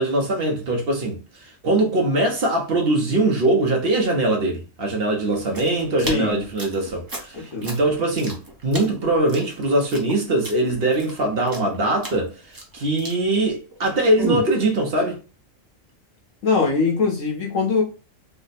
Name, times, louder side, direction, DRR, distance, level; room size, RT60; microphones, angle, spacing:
voice 1, 0.0-15.2, right 2 dB, 55° right, 0.8 m, -22 dB
sound 1, 5.3-13.9 14.2-14.6, right 1 dB, 20° right, 0.6 m, -33 dB
voice 2, 6.0-6.4 7.5-7.7 16.4-17.8, left 4 dB, 75° left, 1.3 m, -21 dB
3.3 x 2.0 x 4.0 m
omnidirectional pair, 1.3 m